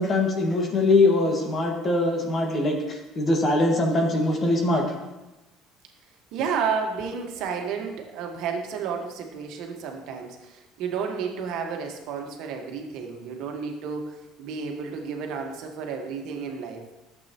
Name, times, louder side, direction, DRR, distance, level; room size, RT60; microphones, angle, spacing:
voice 1, 0.0-4.8, left 2 dB, 35° left, 1 dB, 1.7 m, -22 dB
voice 2, 6.3-16.8, right 6 dB, 70° right, 3 dB, 1.4 m, -31 dB
11.5 x 7.6 x 2.9 m, 1.0 s
supercardioid pair, 95°, 0 cm